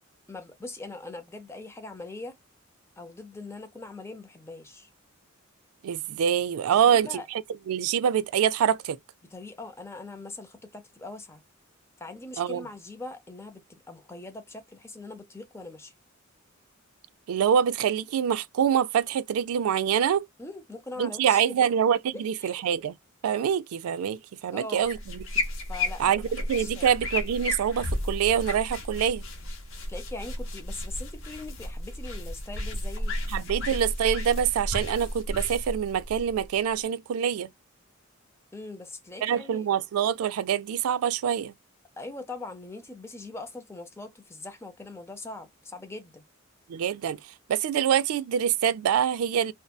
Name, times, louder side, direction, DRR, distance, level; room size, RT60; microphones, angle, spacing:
voice 1, 0.3-2.4 3.0-4.9 6.7-7.3 9.3-11.4 12.0-15.9 20.4-21.7 22.1-22.6 24.5-24.9 25.7-26.9 29.9-33.2 38.5-39.7 42.0-46.2, left 2 dB, 10° left, 0.5 m, -41 dB
voice 2, 5.8-7.2 7.7-9.0 12.4-12.6 17.3-20.3 21.0-22.9 23.2-25.3 26.0-29.2 33.3-37.5 39.2-41.5 46.7-47.2 47.5-49.5, right 8 dB, 90° right, 0.3 m, -25 dB
sound 1, 24.8-36.8, left 1 dB, 65° left, 0.8 m, -33 dB
2.6 x 2.1 x 2.2 m
head